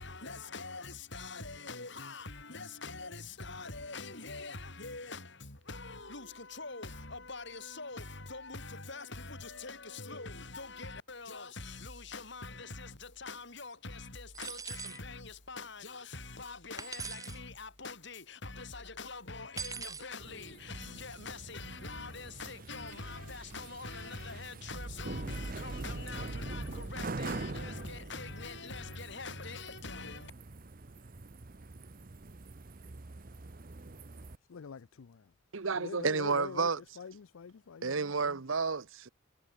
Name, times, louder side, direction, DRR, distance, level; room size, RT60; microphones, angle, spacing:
voice 1, 0.0-30.3, left 3 dB, 60° left, 4.8 m, -44 dB
sound 1, 14.3-15.0 16.8-17.4 19.6-20.1, right 5 dB, 15° right, 2.0 m, -41 dB
sound 2, 20.2-34.4, right 2 dB, 45° right, 0.8 m, -44 dB
voice 2, 34.5-35.2 35.8-36.7 37.0-38.4, left 6 dB, 80° left, 0.5 m, -44 dB
voice 3, 35.5-36.8 37.8-39.1, right 4 dB, 75° right, 1.0 m, -31 dB
head